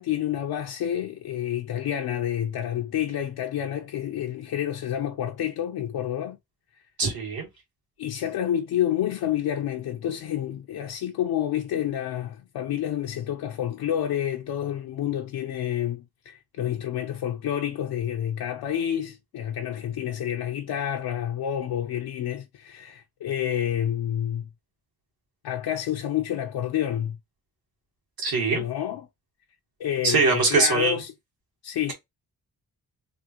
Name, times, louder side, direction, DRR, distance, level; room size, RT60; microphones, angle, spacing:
voice 1, 0.0-6.4 8.0-24.5 25.4-27.2 28.5-29.1 29.8-31.1 31.6-31.9, left 10 dB, 80° left, 0.6 m, -29 dB
voice 2, 7.0-7.5 28.2-28.6 30.0-31.0, right 4 dB, 75° right, 1.8 m, -22 dB
3.6 x 2.5 x 2.9 m
wide cardioid pair, 135°, 37 cm